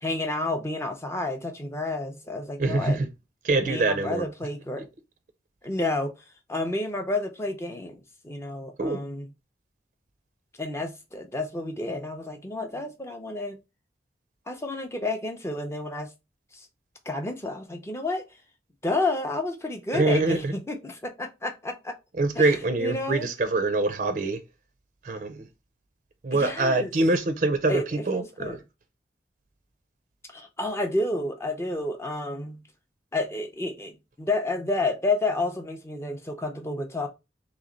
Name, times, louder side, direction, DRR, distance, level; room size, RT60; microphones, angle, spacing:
voice 1, 0.0-3.0 3.6-4.8 5.6-6.1 6.5-9.3 10.6-13.6 14.5-16.1 16.5-16.7 17.1-18.3 18.8-21.9 22.3-23.3 26.3-26.9 27.7-28.6 30.3-32.6 33.1-37.1, left 2 dB, 15° left, 0.6 m, -30 dB
voice 2, 2.6-3.1 3.4-4.3 4.8-4.9 8.8-9.0 19.9-20.5 22.2-24.4 25.0-25.4 26.2-28.6, right 2 dB, 45° right, 0.4 m, -24 dB
3.0 x 2.9 x 3.7 m
head